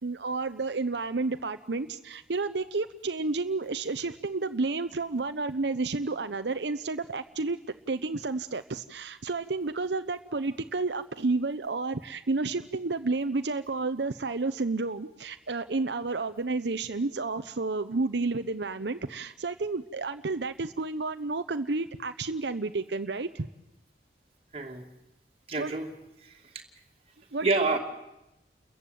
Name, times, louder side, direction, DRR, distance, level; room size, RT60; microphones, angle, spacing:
voice 1, 0.0-7.6 7.9-23.5 25.6-25.7 27.3-27.5, right 3 dB, 75° right, 9 dB, 0.8 m, -31 dB
voice 2, 24.5-24.8 25.5-25.9 26.2-26.5 27.4-27.8, right 3 dB, 35° right, 1 dB, 2.7 m, -28 dB
29.5 x 15.0 x 9.3 m, 0.93 s
head